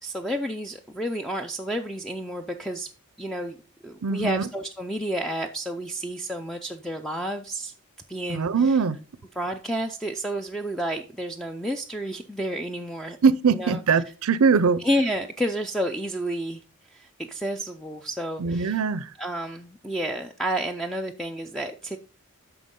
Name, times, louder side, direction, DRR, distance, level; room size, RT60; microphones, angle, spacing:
voice 1, 0.0-2.9 3.2-3.6 3.8-7.7 8.1-8.8 9.3-13.2 13.5-13.8 14.8-16.6 16.9-18.8 19.2-22.0, equal, ahead, 0.4 m, -30 dB
voice 2, 4.0-4.4 8.3-9.0 13.2-14.8 18.4-19.1, right 5 dB, 70° right, 0.5 m, -21 dB
9.2 x 5.9 x 3.7 m
head